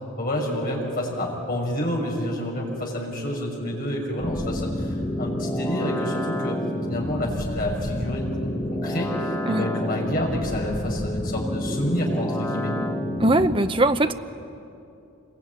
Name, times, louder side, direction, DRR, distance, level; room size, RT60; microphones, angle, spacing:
voice 1, 0.2-6.6 6.9-12.7, equal, 40° left, -1 dB, 6.4 m, -28 dB
sound 1, 4.2-13.6, left 1 dB, 15° left, 1.8 m, -29 dB
voice 2, 13.2-14.1, right 1 dB, 25° right, 9 dB, 0.8 m, -20 dB
26.5 x 22.5 x 9.8 m, 2.7 s
head